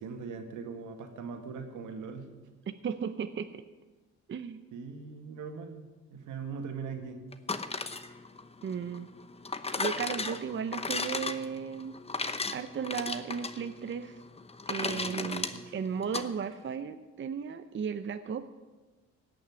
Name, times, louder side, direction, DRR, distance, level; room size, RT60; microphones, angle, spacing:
voice 1, 0.0-2.3 4.7-7.2 7.6-7.7 14.8-15.7, right 5 dB, 80° right, 5 dB, 2.1 m, -41 dB
voice 2, 2.7-3.6 4.3-4.6 8.6-9.1 9.8-12.0 12.5-14.2 14.7-18.4, right 7 dB, 40° right, 9 dB, 0.7 m, -35 dB
sound 1, 7.3-16.3, left 3 dB, 20° left, 1.0 m, -36 dB
17.0 x 6.2 x 9.7 m, 1.2 s
cardioid pair, 90°, 30 cm